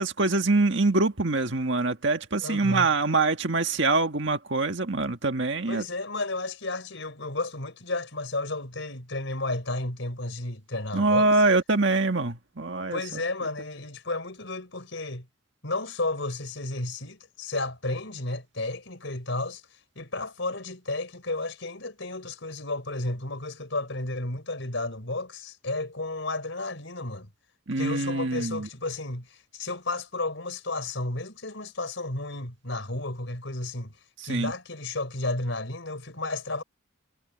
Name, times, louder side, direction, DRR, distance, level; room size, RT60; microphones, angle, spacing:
voice 1, 0.0-5.8 10.9-13.2 27.7-28.7 34.3-34.5, right 3 dB, 60° right, 1.8 m, -24 dB
voice 2, 2.4-2.9 5.7-11.3 12.9-15.3 15.6-19.6 19.9-27.3 27.8-34.0 34.2-36.6, left 2 dB, 60° left, 5.1 m, -32 dB
head